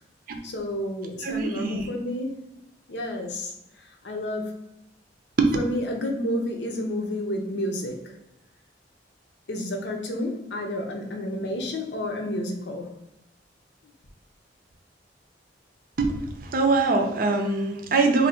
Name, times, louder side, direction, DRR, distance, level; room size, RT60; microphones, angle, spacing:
voice 1, 0.4-2.4 2.9-3.5 4.0-4.5 5.5-8.2 9.5-13.0, left 1 dB, 75° left, 2 dB, 0.7 m, -30 dB
voice 2, 1.2-1.9 5.4-5.5 16.0-16.1 16.4-18.3, right 3 dB, 55° right, 4 dB, 0.5 m, -23 dB
2.7 x 2.7 x 4.2 m, 0.86 s
head